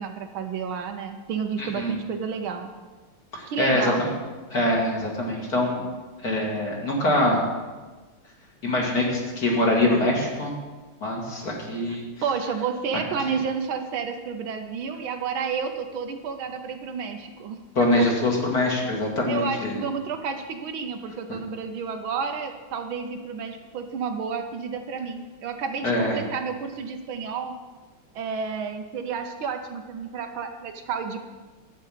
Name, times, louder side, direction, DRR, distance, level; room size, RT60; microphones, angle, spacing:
voice 1, 0.0-2.7 3.5-4.0 12.2-17.6 19.3-27.5 28.1-31.2, right 6 dB, 70° right, 6 dB, 1.6 m, -31 dB
voice 2, 1.6-1.9 3.3-4.1 4.5-5.8 6.2-7.4 8.6-10.5 11.0-12.1 17.8-19.8 25.8-26.2, left 1 dB, 45° left, -2 dB, 2.5 m, -24 dB
11.0 x 8.6 x 5.7 m, 1.3 s
omnidirectional pair, 2.4 m